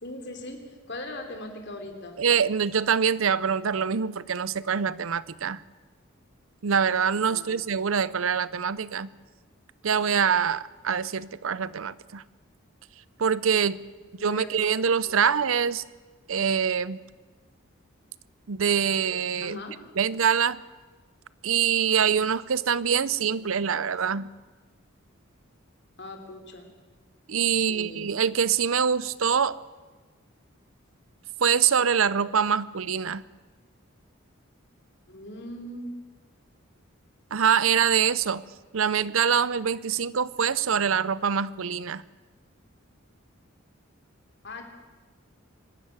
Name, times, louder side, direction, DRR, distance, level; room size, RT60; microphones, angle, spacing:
voice 1, 0.0-2.2 7.3-7.6 14.0-14.7 15.1-15.2 19.4-19.8 26.0-26.7 27.5-28.1 35.1-35.9 44.4-44.6, left 1 dB, 55° left, 4 dB, 3.3 m, -40 dB
voice 2, 2.2-5.6 6.6-9.1 9.8-12.2 13.2-13.8 14.2-15.8 16.3-17.0 18.5-19.6 20.0-20.6 21.4-24.3 27.3-29.6 31.4-33.2 37.3-38.4 38.7-42.0, right 7 dB, 75° right, 18 dB, 0.6 m, -24 dB
23.5 x 13.0 x 9.6 m, 1.4 s
head